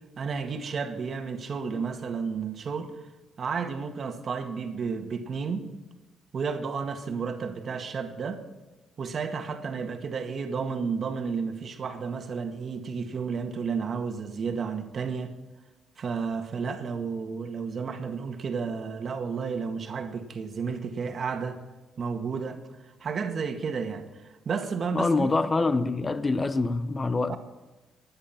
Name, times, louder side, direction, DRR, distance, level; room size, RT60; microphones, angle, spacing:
voice 1, 0.2-2.9 3.4-5.7 6.3-8.4 9.0-15.3 16.0-21.6 22.0-22.6 23.0-25.3 27.3-27.4, right 5 dB, 50° right, 1.8 m, -32 dB
voice 2, 24.9-27.4, left 3 dB, 25° left, 1.1 m, -25 dB
16.5 x 10.5 x 5.8 m
cardioid pair, 90°, 0 cm